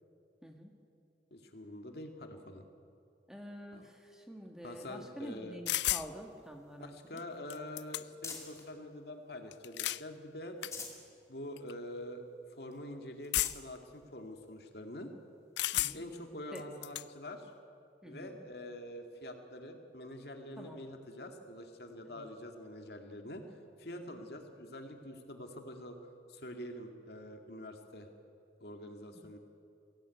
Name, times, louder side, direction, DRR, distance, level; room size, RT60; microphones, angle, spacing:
voice 1, 0.4-0.7 3.3-7.2 15.7-16.0 16.5-16.7 18.0-18.4 20.6-20.8 22.1-22.3 24.0-24.2 29.1-29.3, equal, 5° right, 2 dB, 1.8 m, -48 dB
voice 2, 1.3-2.6 3.7-3.8 4.6-5.6 6.8-10.6 11.3-12.2 12.5-15.1 15.9-17.5 18.0-26.0 26.3-28.1 28.6-29.4, left 1 dB, 65° left, 4 dB, 2.2 m, -46 dB
sound 1, 5.7-6.1 7.2-7.3 7.5-8.3 9.5-10.0 10.6-10.7 11.6-11.7 13.3-13.8 15.6-16.2 16.5-17.1, left 15 dB, 80° left, 0.5 m, -33 dB
sound 2, 6.0-8.7 9.2-10.0 10.4-11.1 11.5-11.6 12.0-12.1 12.7-12.8 13.2-13.7 14.5-14.6 16.3-16.4, left 4 dB, 15° left, 2.4 m, -49 dB
23.0 x 17.0 x 9.5 m, 2.5 s
head